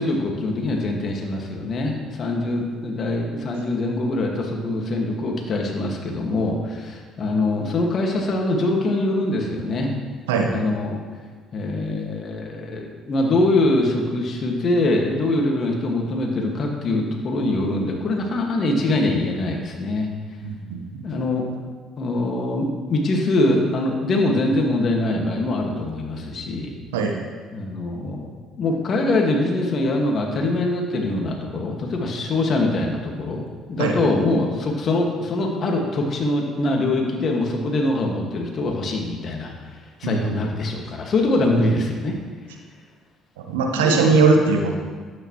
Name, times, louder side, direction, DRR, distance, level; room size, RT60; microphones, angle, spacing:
voice 1, 0.0-9.9 10.5-11.0 11.5-20.1 21.0-21.5 22.0-26.7 27.5-28.3 28.6-33.4 33.7-39.5 40.0-42.1 43.7-44.0, left 2 dB, 50° left, 1 dB, 2.0 m, -23 dB
voice 2, 20.4-20.8 26.9-27.2 33.8-33.9 40.0-40.4 43.4-44.7, right 4 dB, 90° right, 2 dB, 1.1 m, -20 dB
12.0 x 9.0 x 3.2 m, 1.5 s
hypercardioid pair, 60°, 0 cm